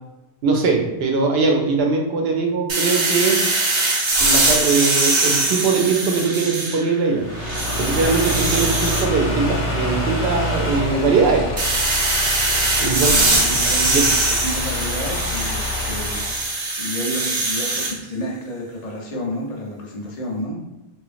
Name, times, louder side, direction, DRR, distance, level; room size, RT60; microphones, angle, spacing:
voice 1, 0.4-3.4 4.2-7.3 7.8-11.5 12.8-13.1 13.4-14.0, right 4 dB, 75° right, 2 dB, 0.8 m, -21 dB
sound 1, 2.7-7.0 7.4-9.1 11.6-17.9, right 2 dB, 45° right, 0.4 m, -21 dB
sound 2, 7.2-16.5, left 1 dB, 75° left, 0.9 m, -26 dB
voice 2, 12.8-16.2 16.8-20.6, equal, 45° left, -2 dB, 0.7 m, -30 dB
2.8 x 2.3 x 2.4 m, 1.0 s
omnidirectional pair, 1.1 m